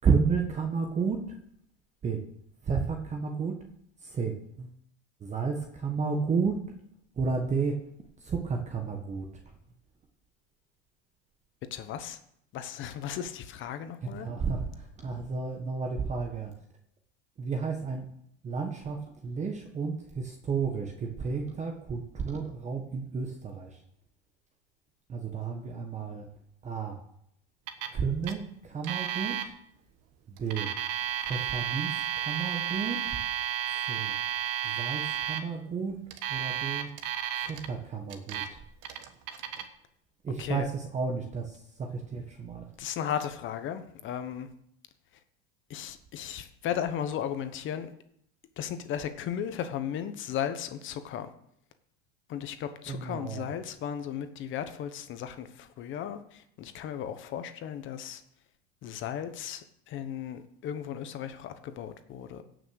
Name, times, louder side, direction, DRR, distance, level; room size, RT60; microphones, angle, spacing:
voice 1, 0.0-1.2 2.0-2.2 2.6-3.6 4.0-4.7 5.2-6.6 7.2-7.8 8.2-9.3 14.0-16.5 17.4-18.1 18.4-23.8 25.1-26.3 26.6-27.0 27.9-29.5 30.3-30.7 31.3-33.2 33.9-34.1 34.6-36.0 36.3-36.9 37.4-38.6 40.2-42.7 52.9-53.5, right 5 dB, 20° right, 4 dB, 1.4 m, -32 dB
voice 2, 11.7-12.2 12.5-14.3 40.4-40.7 42.8-44.5 45.7-47.9 48.6-51.3 52.3-58.2 58.8-62.4, left 9 dB, 35° left, 10 dB, 1.2 m, -35 dB
Alarm, 27.7-28.0 28.2-28.3 28.8-29.4 30.4-35.4 36.1-37.7 38.1-38.5 38.8-39.6, right 10 dB, 50° right, 1.5 m, -32 dB
16.5 x 6.3 x 6.5 m, 0.72 s
supercardioid pair, 135°, 32 cm